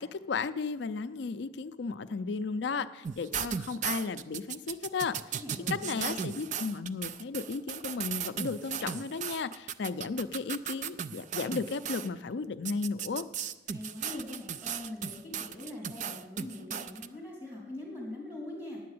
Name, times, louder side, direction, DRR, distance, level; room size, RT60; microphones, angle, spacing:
voice 1, 0.0-5.2 5.7-13.2, left 4 dB, 60° left, 12 dB, 0.4 m, -34 dB
sound 1, 3.0-12.1 12.7-17.1, right 7 dB, 40° right, 0.3 m, -36 dB
voice 2, 5.4-6.4 13.7-18.8, left 1 dB, 10° right, -3 dB, 3.3 m, -42 dB
9.2 x 8.6 x 7.7 m, 1.1 s
head